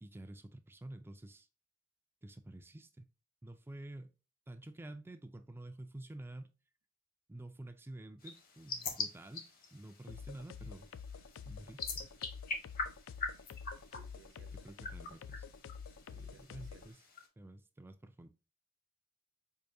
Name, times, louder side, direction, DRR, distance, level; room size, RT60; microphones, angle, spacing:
voice 1, 0.0-1.5 2.2-3.1 3.4-4.1 4.5-6.5 7.3-10.9 11.5-12.1 14.5-15.5 16.1-17.0 17.4-18.3, right 1 dB, 10° right, 0.3 m, -50 dB
sound 1, 8.2-17.3, left 4 dB, 45° left, 0.9 m, -44 dB
sound 2, 10.1-16.9, left 6 dB, 75° left, 0.3 m, -48 dB
voice 2, 13.9-14.7 16.1-16.9, right 5 dB, 65° right, 0.7 m, -62 dB
4.7 x 2.6 x 2.5 m
head